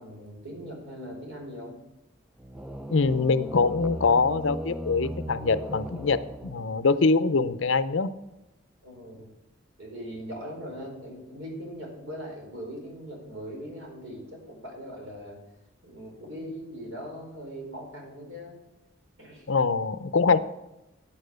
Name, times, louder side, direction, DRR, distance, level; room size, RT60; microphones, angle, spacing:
voice 1, 0.0-1.8 8.8-9.3 9.8-15.4 15.8-18.6 19.2-19.5, equal, 75° right, 0 dB, 4.4 m, -40 dB
sound 1, 2.4-7.1, equal, 5° right, 0.4 m, -38 dB
voice 2, 2.9-8.1 19.5-20.4, left 4 dB, 75° left, 13 dB, 0.6 m, -24 dB
9.7 x 8.9 x 6.5 m, 0.94 s
head